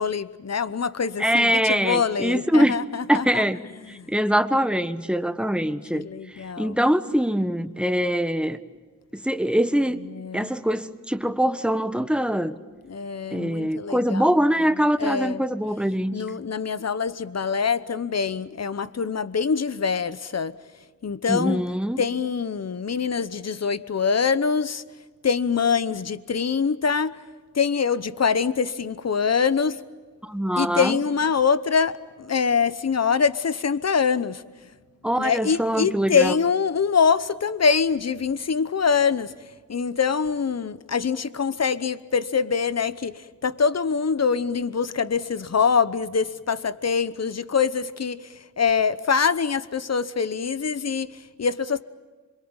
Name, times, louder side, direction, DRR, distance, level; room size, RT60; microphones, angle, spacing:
voice 1, 0.0-3.4 3.9-4.1 5.9-6.8 10.0-10.5 12.9-14.3 15.0-15.4 16.1-20.6 21.0-21.6 22.0-24.8 25.2-27.2 27.5-29.8 30.6-34.4 35.2-39.3 39.7-51.8, left 6 dB, 55° left, 1.0 m, -24 dB
voice 2, 1.2-2.8 3.1-3.6 4.1-6.1 6.6-8.6 9.1-10.0 10.3-12.5 13.3-16.2 21.3-22.0 30.2-31.0 35.0-36.3, equal, 5° right, 1.4 m, -23 dB
27.0 x 23.0 x 8.9 m
cardioid pair, 55°, 32 cm